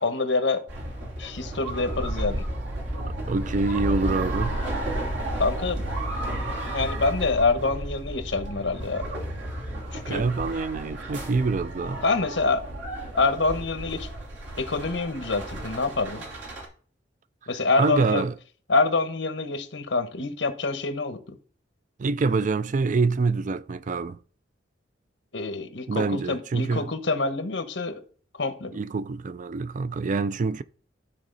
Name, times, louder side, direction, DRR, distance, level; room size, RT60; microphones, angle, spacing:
voice 1, 0.0-0.6 1.2-2.4 5.4-5.8 6.7-9.1 9.9-10.2 12.0-12.6 13.2-14.1 14.5-16.2 17.5-18.2 18.7-21.4 25.3-28.0 28.4-28.8, left 3 dB, 75° left, 1.2 m, -26 dB
sound 1, 0.7-16.7, right 1 dB, 75° right, 2.8 m, -32 dB
voice 2, 3.0-4.6 10.1-12.0 17.8-18.3 22.0-24.2 25.9-26.9 28.7-30.6, right 4 dB, 45° right, 0.4 m, -26 dB
12.0 x 4.1 x 4.0 m
head